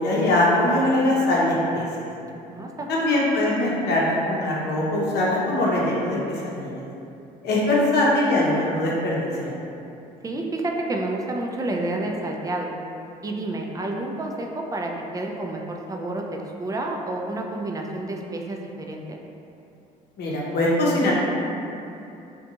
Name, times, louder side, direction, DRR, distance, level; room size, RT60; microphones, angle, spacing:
voice 1, 0.0-2.1 2.9-6.8 7.4-9.5 20.2-21.1, left 1 dB, 60° left, -4 dB, 0.7 m, -22 dB
voice 2, 2.5-3.0 10.2-12.7 13.2-16.2 16.6-19.2, right 2 dB, 20° right, 1 dB, 0.3 m, -29 dB
2.4 x 2.2 x 2.8 m, 2.7 s
supercardioid pair, 65°, 19 cm